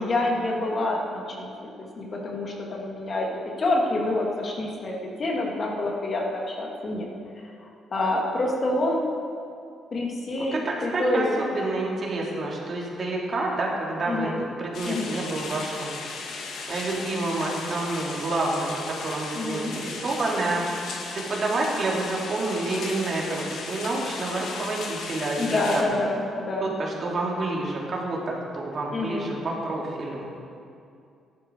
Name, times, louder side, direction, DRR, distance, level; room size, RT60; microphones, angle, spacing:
voice 1, 0.0-1.7 2.0-7.1 7.6-9.1 9.9-11.4 14.1-14.4 14.8-15.2 19.3-19.7 25.4-26.7 28.9-29.3, left 2 dB, 45° left, -1 dB, 2.5 m, -27 dB
voice 2, 10.4-15.9 16.7-20.6 21.1-25.9 26.6-30.3, right 2 dB, 45° right, -3 dB, 3.1 m, -28 dB
sound 1, 14.7-25.8, left 4 dB, 75° left, 1.8 m, -36 dB
14.0 x 11.5 x 4.8 m, 2.5 s
cardioid pair, 90°, 0 cm